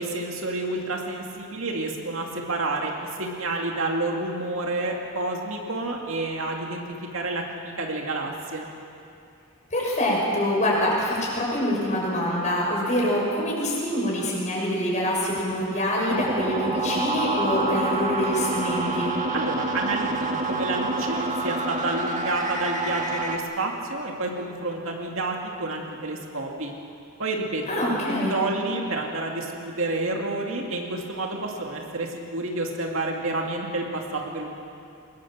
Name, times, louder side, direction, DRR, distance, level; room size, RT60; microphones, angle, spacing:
voice 1, 0.0-6.8 7.1-8.7 19.3-26.7 27.2-34.5, right 2 dB, 60° right, 1 dB, 2.5 m, -29 dB
voice 2, 9.7-19.1 27.7-28.4, left 1 dB, 30° left, -3 dB, 6.2 m, -25 dB
sound 1, 16.1-23.4, right 2 dB, 35° right, 1.9 m, -27 dB
24.5 x 20.5 x 7.4 m, 2.6 s
head